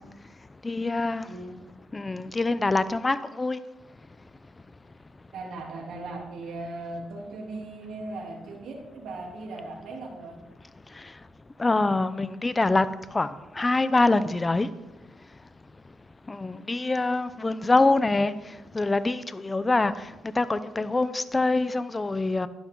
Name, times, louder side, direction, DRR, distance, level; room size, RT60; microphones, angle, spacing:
voice 1, 0.6-1.3 1.9-3.6 11.6-12.9 13.1-13.3 13.6-14.7 16.3-18.3 18.7-19.9 20.4-22.5, left 2 dB, 20° left, 14 dB, 0.7 m, -24 dB
voice 2, 1.2-1.7 5.3-10.4, right 2 dB, 75° right, -1 dB, 3.2 m, -38 dB
12.0 x 11.5 x 3.9 m, 1.0 s
cardioid pair, 90°, 0 cm